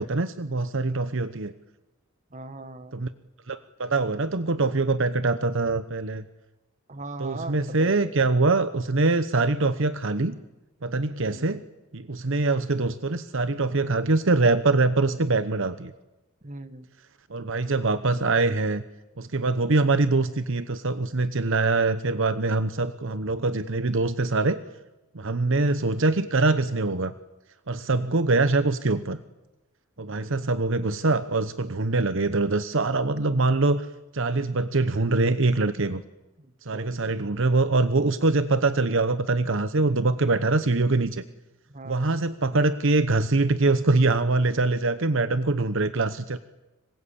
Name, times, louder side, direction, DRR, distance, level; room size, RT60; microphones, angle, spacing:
voice 1, 0.0-1.5 2.9-3.1 3.5-6.2 7.2-10.4 10.8-11.6 11.9-15.9 17.3-18.8 19.2-24.6 25.1-27.1 27.7-29.2 30.0-33.9 34.1-36.0 36.6-41.2 41.8-46.4, right 3 dB, 65° right, 12 dB, 1.0 m, -24 dB
voice 2, 2.3-3.0 6.9-8.1 11.2-11.5 16.4-16.9 27.9-28.3 36.7-36.9 41.7-42.2, right 2 dB, 35° right, 11 dB, 1.8 m, -40 dB
26.0 x 23.5 x 8.6 m, 1.0 s
head